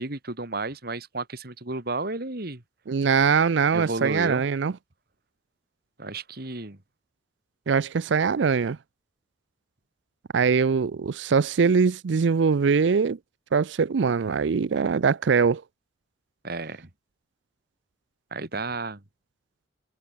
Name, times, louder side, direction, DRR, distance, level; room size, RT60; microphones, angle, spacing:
voice 1, 0.0-2.6 3.7-4.5 6.0-6.8 16.4-16.9 18.3-19.0, right 2 dB, 55° right, 2.3 m, -32 dB
voice 2, 2.9-4.7 7.7-8.8 10.3-13.2 13.5-15.6, right 5 dB, 70° right, 0.5 m, -22 dB
head